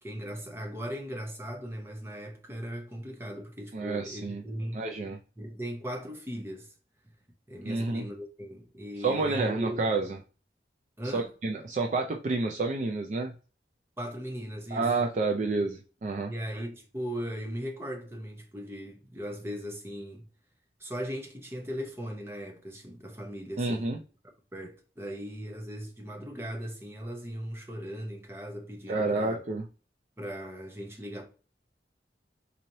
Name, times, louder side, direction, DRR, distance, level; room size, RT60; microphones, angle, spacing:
voice 1, 0.0-4.8 5.4-6.7 7.5-9.9 11.0-11.3 14.0-14.9 15.3-15.5 16.3-20.3 20.8-24.0 24.5-29.4 30.2-31.2, equal, 15° right, 0.8 m, -38 dB
voice 2, 3.7-4.4 4.7-5.2 7.6-8.1 9.0-10.2 11.1-13.3 14.7-16.3 23.6-24.0 28.9-29.6, right 3 dB, 40° right, 0.4 m, -29 dB
4.0 x 3.1 x 2.7 m
head